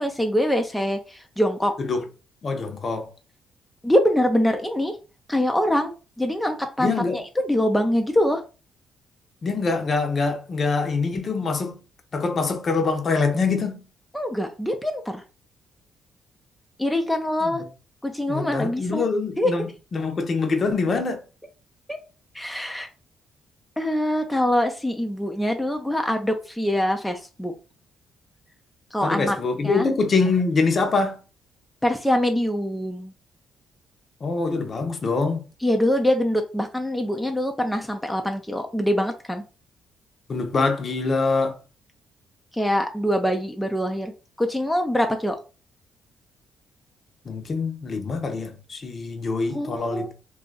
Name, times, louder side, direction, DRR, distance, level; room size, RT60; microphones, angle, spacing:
voice 1, 0.0-1.7 3.8-5.0 5.3-8.4 14.1-15.2 16.8-17.6 18.0-19.1 19.4-19.5 21.9-22.0 22.3-22.9 23.8-27.5 28.9-29.4 29.6-29.9 31.8-33.1 35.6-39.4 42.5-44.1 44.4-45.4 49.5-50.1, equal, 5° left, 0.5 m, -24 dB
voice 2, 2.4-3.1 6.8-7.2 9.4-11.8 12.1-13.9 18.3-19.7 19.9-21.2 29.0-31.2 34.2-35.4 40.3-41.6 47.3-50.1, left 4 dB, 45° left, 0.7 m, -24 dB
2.7 x 2.4 x 3.9 m
cardioid pair, 90°, 0 cm